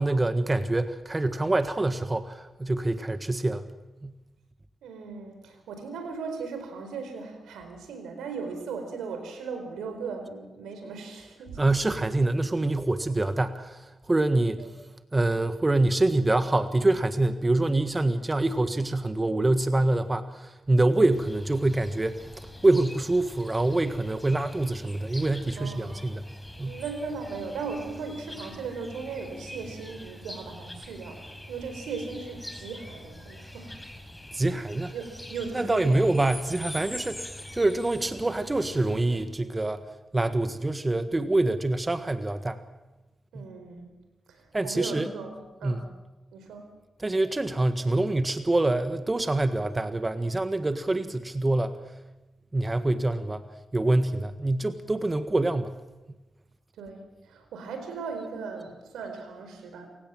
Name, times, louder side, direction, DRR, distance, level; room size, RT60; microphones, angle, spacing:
voice 1, 0.0-3.7 4.0-4.1 11.6-14.6 15.1-26.2 26.6-26.8 34.3-34.9 35.5-39.8 40.1-42.6 43.3-43.5 44.5-45.1 45.6-45.9 47.0-51.8 52.5-53.4 53.7-55.7, right 2 dB, 30° right, 10 dB, 1.6 m, -25 dB
voice 2, 4.8-11.6 14.6-14.7 25.6-26.1 26.5-33.7 34.9-36.0 43.3-43.9 44.3-45.8 46.3-46.7 56.8-59.9, right 5 dB, 85° right, 6 dB, 4.4 m, -37 dB
sound 1, 21.1-39.3, left 1 dB, 15° left, 4.7 m, -44 dB
28.0 x 17.0 x 7.7 m, 1.1 s
supercardioid pair, 45°, 0 cm